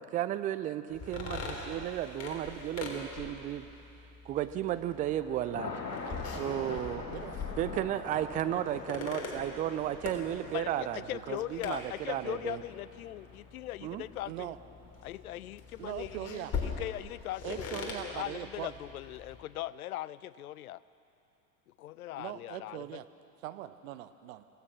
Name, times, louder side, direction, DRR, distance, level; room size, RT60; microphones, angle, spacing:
voice 1, 0.0-3.7 4.3-5.7 6.4-7.1 7.6-11.0 11.3-12.6 13.8-14.0, right 12 dB, 15° right, 13 dB, 0.4 m, -34 dB
sound 1, 0.9-19.4, left 4 dB, 30° left, 3.7 m, -43 dB
Thunder, 4.7-16.0, left 4 dB, 75° left, 2.9 m, -45 dB
voice 2, 6.1-7.3 11.0-11.2 14.3-14.6 15.8-16.5 17.4-18.7 22.2-23.0 23.4-24.4, right 14 dB, 50° right, 12 dB, 1.0 m, -41 dB
voice 3, 10.5-14.5 15.0-20.8 21.8-23.0, left 14 dB, 60° left, 19 dB, 0.6 m, -40 dB
25.5 x 16.5 x 6.2 m, 2.7 s
figure-of-eight pair, 85°, 50 cm